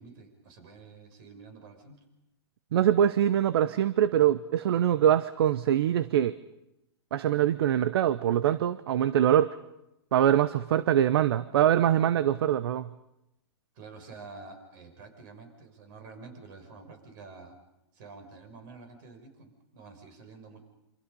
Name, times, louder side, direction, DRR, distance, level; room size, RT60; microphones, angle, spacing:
voice 1, 0.0-2.0 13.7-17.6 17.9-20.6, right 4 dB, 45° right, 7 dB, 6.1 m, -48 dB
voice 2, 2.7-6.3 7.1-9.5 10.1-12.9, right 10 dB, 65° right, 15 dB, 0.8 m, -23 dB
27.5 x 26.0 x 5.5 m, 0.88 s
hypercardioid pair, 130°, 14 cm